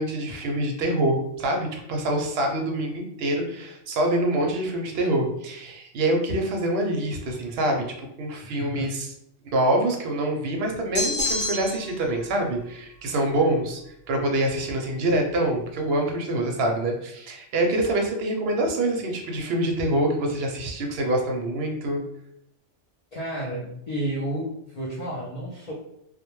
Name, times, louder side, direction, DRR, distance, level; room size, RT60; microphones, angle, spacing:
voice 1, 0.0-9.1 9.5-13.8 14.1-22.0, right 1 dB, 65° right, 2 dB, 0.7 m, -25 dB
voice 2, 8.4-8.9 23.1-25.7, right 1 dB, 75° left, -4 dB, 0.3 m, -31 dB
sound 1, 10.9-11.9, left 2 dB, 55° left, 0.9 m, -27 dB
2.2 x 2.1 x 3.0 m, 0.76 s
omnidirectional pair, 1.3 m